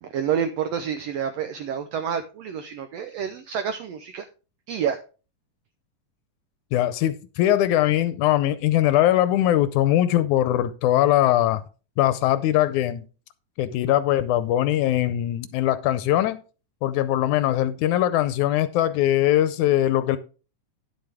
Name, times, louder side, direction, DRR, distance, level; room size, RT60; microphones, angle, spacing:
voice 1, 0.0-4.3 4.7-5.0, right 8 dB, 85° right, 1.4 m, -28 dB
voice 2, 6.7-11.6 12.0-13.1 13.6-16.4 16.8-20.2, left 13 dB, 80° left, 1.9 m, -21 dB
10.0 x 7.7 x 3.5 m
omnidirectional pair, 3.7 m